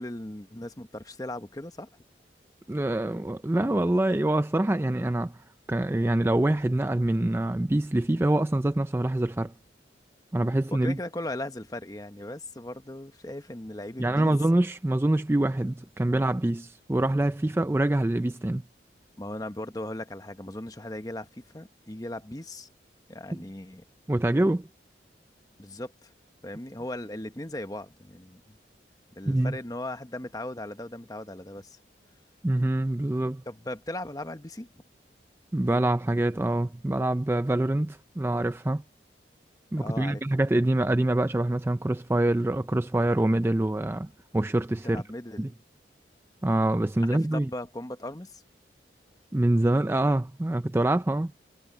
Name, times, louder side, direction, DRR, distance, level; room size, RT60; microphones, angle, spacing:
voice 1, 0.0-1.9 10.7-14.3 16.0-16.2 19.2-22.7 23.1-23.8 25.6-26.1 26.4-28.6 29.1-31.8 33.5-34.7 39.8-40.2 44.8-45.5 47.0-48.4, left 1 dB, 20° left, 1.1 m, -38 dB
voice 2, 2.7-5.3 5.7-9.5 10.3-11.0 14.0-18.6 24.1-24.7 29.3-29.6 32.4-33.4 35.5-38.8 39.7-45.0 45.4-45.5 46.4-47.5 49.3-51.3, right 1 dB, 15° right, 0.4 m, -25 dB
head